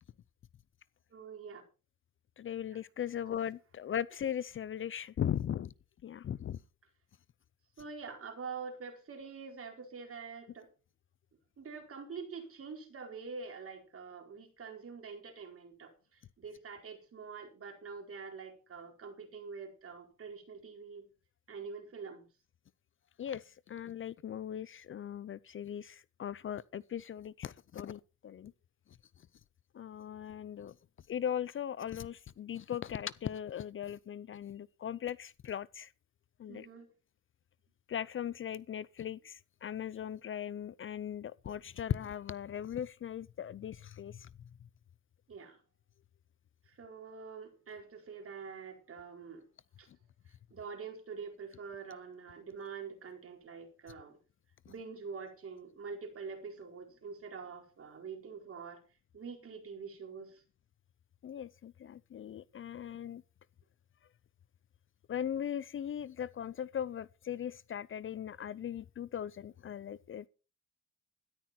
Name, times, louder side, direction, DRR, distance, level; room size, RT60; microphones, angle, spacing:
voice 1, 1.1-1.6 2.7-2.8 7.8-10.7 11.6-21.1 21.5-22.2 36.5-36.9 45.3-45.6 46.7-49.5 49.8-49.9 50.5-54.2 54.7-58.8 59.1-60.4, right 5 dB, 50° right, 4.5 m, -45 dB
voice 2, 2.4-5.7 6.0-6.6 23.2-28.5 29.7-30.7 31.1-35.9 36.4-36.7 37.9-44.5 61.2-63.2 65.1-70.3, left 9 dB, 45° left, 0.5 m, -39 dB
13.5 x 11.0 x 4.3 m
cardioid pair, 90°, 30 cm